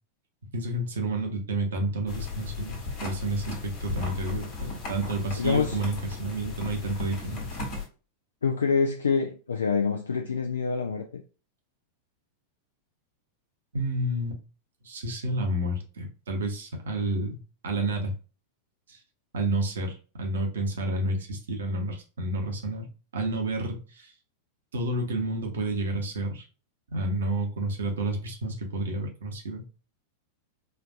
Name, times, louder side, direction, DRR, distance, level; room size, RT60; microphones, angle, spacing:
voice 1, 0.5-7.4 13.7-14.4 14.8-17.4 17.6-18.1 18.9-19.0 19.3-24.1 24.7-26.5 26.9-29.6, right 2 dB, 65° right, 0.9 m, -30 dB
sound 1, 2.1-7.9, left 4 dB, 45° left, 1.2 m, -36 dB
voice 2, 5.4-5.8 8.4-11.2, left 5 dB, 70° left, 0.4 m, -26 dB
4.4 x 2.5 x 2.4 m
figure-of-eight pair, 90°, 0 cm